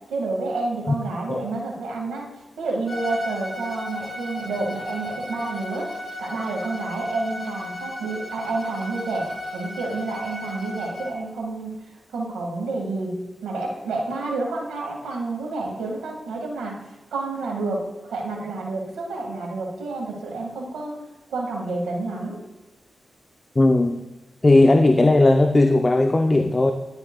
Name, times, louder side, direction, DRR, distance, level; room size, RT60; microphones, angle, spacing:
voice 1, 0.1-2.3 2.6-11.7 12.1-16.8 17.1-21.0 21.3-22.4, right 3 dB, 90° right, -1 dB, 1.8 m, -29 dB
Bowed string instrument, 2.9-11.2, left 1 dB, 55° left, 2.2 m, -35 dB
voice 2, 23.6-24.0 24.4-26.7, left 2 dB, 35° left, 6 dB, 0.6 m, -17 dB
10.5 x 7.8 x 2.3 m, 1.1 s
supercardioid pair, 40°, 0 cm